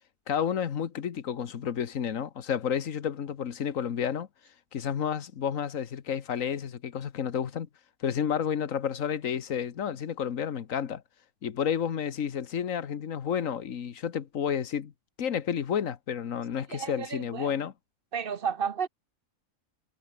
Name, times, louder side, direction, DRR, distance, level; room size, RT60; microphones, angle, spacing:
voice 1, 0.3-4.3 4.7-7.7 8.0-11.0 11.4-14.9 15.2-17.7, left 8 dB, 80° left, 1.6 m, -31 dB
voice 2, 16.7-17.5 18.1-18.9, right 7 dB, 50° right, 1.0 m, -32 dB
omnidirectional pair, 1.4 m